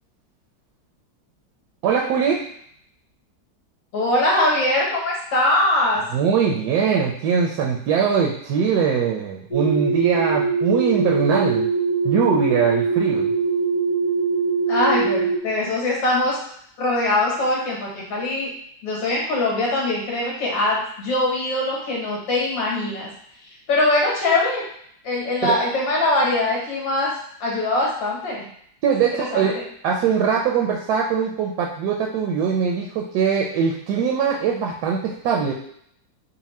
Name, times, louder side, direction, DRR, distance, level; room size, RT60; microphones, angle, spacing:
voice 1, 1.8-2.5 6.1-11.7 12.0-13.3 25.4-25.6 28.8-29.5 29.8-35.5, right 6 dB, 70° right, -1 dB, 1.0 m, -21 dB
voice 2, 3.9-6.0 14.7-16.4 16.8-18.5 18.8-23.1 23.7-24.6 25.0-27.1 27.4-28.5 29.2-29.5, left 2 dB, 85° left, -4 dB, 2.1 m, -22 dB
sound 1, 9.5-15.4, right 5 dB, 60° left, 0.4 m, -22 dB
4.2 x 2.1 x 4.1 m, 0.67 s
omnidirectional pair, 2.0 m